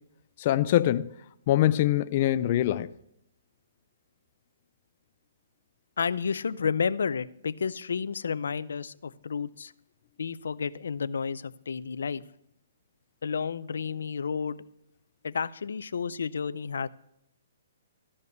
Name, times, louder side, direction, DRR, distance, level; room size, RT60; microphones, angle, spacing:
voice 1, 0.4-1.1 1.5-2.9, left 13 dB, 35° left, 0.4 m, -23 dB
voice 2, 6.0-9.7 10.2-12.2 13.2-14.6 15.2-16.9, left 6 dB, 85° left, 0.6 m, -31 dB
14.0 x 5.4 x 7.9 m
hypercardioid pair, 160°, 0 cm